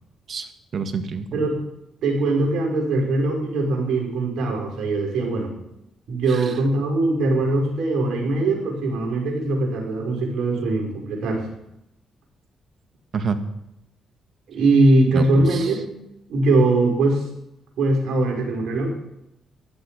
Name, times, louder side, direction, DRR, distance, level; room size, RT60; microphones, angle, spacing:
voice 1, 0.3-1.5 6.3-6.5 13.1-13.4 15.1-15.7, right 5 dB, 60° right, 9 dB, 1.7 m, -28 dB
voice 2, 2.0-5.5 6.1-11.4 14.5-15.9 16.3-17.2 17.8-18.9, right 2 dB, 75° right, 0 dB, 5.5 m, -21 dB
15.0 x 11.5 x 5.2 m, 0.84 s
supercardioid pair, 55°, 0 cm